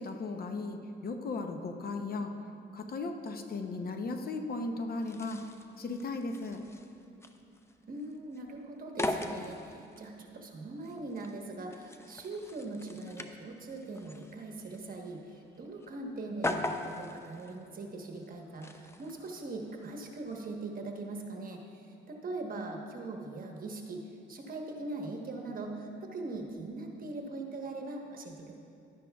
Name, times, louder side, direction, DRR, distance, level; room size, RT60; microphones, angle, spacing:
voice 1, 0.0-2.3 2.7-5.4 5.8-6.6, left 3 dB, 50° left, 5 dB, 0.7 m, -36 dB
sound 1, 5.0-20.5, left 2 dB, 15° left, 0.5 m, -41 dB
voice 2, 7.8-24.0 24.3-28.6, right 2 dB, 45° right, 2 dB, 1.2 m, -41 dB
11.5 x 9.9 x 2.3 m, 2.7 s
cardioid pair, 90°, 20 cm